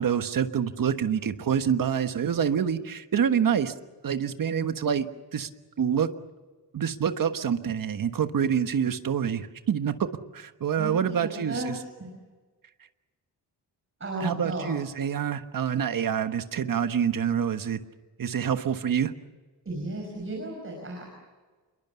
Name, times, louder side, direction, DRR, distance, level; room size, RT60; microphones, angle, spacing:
voice 1, 0.0-3.7 4.0-5.1 5.3-5.5 5.8-6.1 6.7-11.7 14.2-17.8 18.2-19.1, right 8 dB, 50° right, 9 dB, 1.4 m, -26 dB
voice 2, 10.8-12.1 14.0-14.7 19.7-21.1, right 2 dB, 30° right, 0 dB, 5.5 m, -34 dB
28.0 x 22.0 x 7.1 m, 1.3 s
wide cardioid pair, 175°, 42 cm